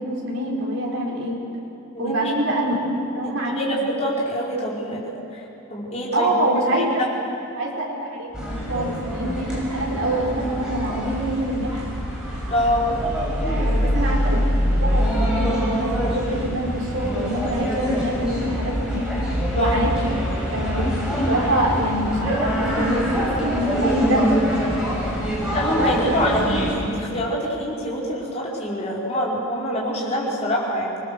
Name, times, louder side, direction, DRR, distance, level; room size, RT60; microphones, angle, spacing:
voice 1, 0.0-1.4 2.0-2.8 3.1-3.8 6.1-7.0 7.6-11.8 13.5-14.4 14.7-19.1 19.4-19.9 20.5-20.9 21.3-24.3 25.8-26.4, right 1 dB, 65° right, -3 dB, 4.9 m, -25 dB
voice 2, 1.9-2.3 3.2-6.3 6.7-7.1 12.5-12.9 19.5-19.8 25.5-31.0, equal, 30° left, -5 dB, 5.1 m, -25 dB
sound 1, 8.3-26.7, equal, 5° right, 6.5 m, -24 dB
27.0 x 20.0 x 6.9 m, 2.7 s
head